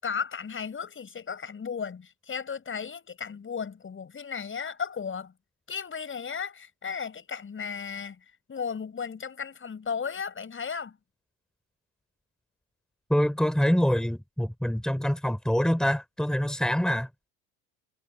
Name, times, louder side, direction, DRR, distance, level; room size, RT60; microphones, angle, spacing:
voice 1, 0.0-5.3 5.7-8.2 8.5-11.0, left 6 dB, 30° left, 6.8 m, -35 dB
voice 2, 13.1-17.1, equal, ahead, 4.9 m, -25 dB
supercardioid pair, 90°, 38 cm